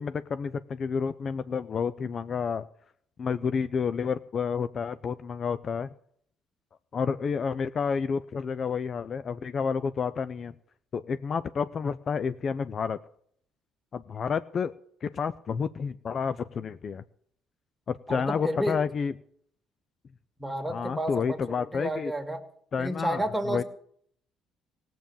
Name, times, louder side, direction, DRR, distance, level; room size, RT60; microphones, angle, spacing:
voice 1, 0.0-2.6 3.2-5.9 6.9-10.5 10.9-13.0 13.9-14.7 15.0-17.0 17.9-19.1 20.7-22.1 22.7-23.6, left 6 dB, 45° left, 13 dB, 0.5 m, -30 dB
voice 2, 18.1-18.8 20.4-22.4 22.8-23.6, right 1 dB, 5° right, 5 dB, 2.1 m, -31 dB
17.0 x 7.7 x 7.0 m, 0.65 s
supercardioid pair, 85°, 0 cm